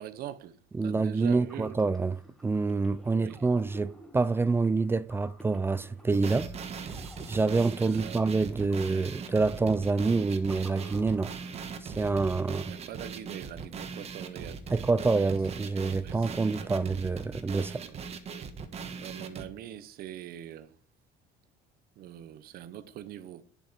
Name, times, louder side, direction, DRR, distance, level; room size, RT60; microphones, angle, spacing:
voice 1, 0.0-0.6 0.8-1.8 3.2-3.5 7.8-8.2 12.7-14.6 16.0-16.7 17.8-18.0 18.8-20.8 22.0-23.4, right 11 dB, 60° right, 1.0 m, -43 dB
voice 2, 0.7-6.5 7.3-11.3 11.8-12.7 14.7-17.8, right 3 dB, 15° right, 0.4 m, -27 dB
sound 1, 1.2-12.0, right 1 dB, 5° left, 1.8 m, -52 dB
sound 2, 6.1-19.5, right 5 dB, 35° right, 1.4 m, -40 dB
10.0 x 7.4 x 5.1 m
cardioid pair, 155°, 18 cm